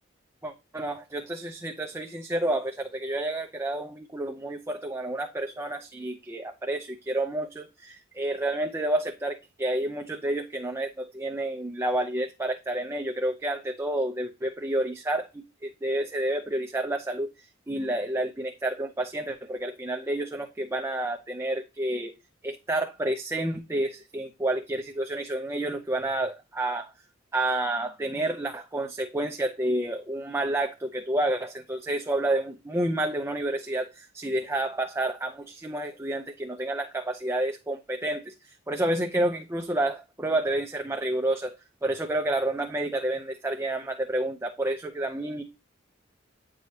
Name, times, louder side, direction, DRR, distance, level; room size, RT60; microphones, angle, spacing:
voice 1, 0.4-15.3 15.6-17.3 17.7-22.1 22.4-26.9 27.3-41.5 41.8-45.4, right 1 dB, 15° right, 0.6 m, -29 dB
9.1 x 4.8 x 2.8 m
head